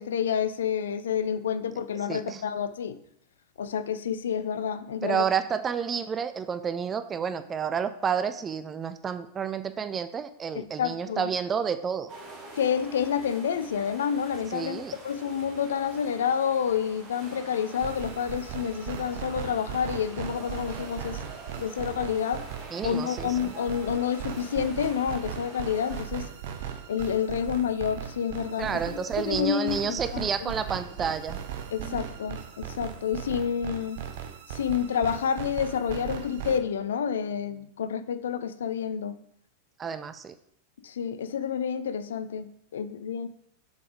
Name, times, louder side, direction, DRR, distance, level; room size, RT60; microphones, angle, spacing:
voice 1, 0.0-3.0 3.6-5.2 10.6-11.3 12.6-21.2 21.5-22.4 22.8-26.3 26.9-30.5 31.7-34.0 34.5-39.1 40.8-42.5 42.7-43.3, left 8 dB, 65° left, 12 dB, 0.5 m, -29 dB
voice 2, 2.1-2.4 5.0-12.1 14.5-15.0 22.7-23.5 28.6-31.4 31.8-32.0 39.8-40.3, right 7 dB, 20° right, 11 dB, 0.5 m, -30 dB
sound 1, 12.1-26.0, right 3 dB, 40° right, 1.9 m, -46 dB
sound 2, 17.8-36.6, right 9 dB, 55° right, 0.7 m, -38 dB
6.6 x 4.9 x 4.8 m, 0.72 s
figure-of-eight pair, 90°, 0 cm